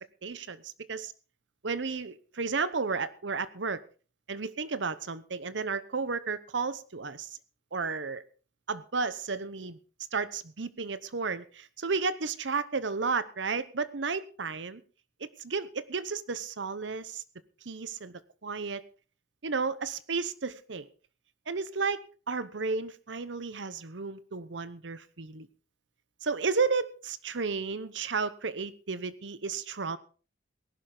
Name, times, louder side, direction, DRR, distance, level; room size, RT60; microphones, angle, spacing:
voice 1, 0.2-1.1 1.6-3.8 4.3-7.3 7.7-8.2 8.7-9.8 10.1-14.8 15.2-17.2 17.6-18.8 19.4-20.9 21.5-22.0 22.3-25.5 26.2-30.0, right 4 dB, 75° right, 15 dB, 0.9 m, -33 dB
18.5 x 11.5 x 3.9 m, 0.37 s
head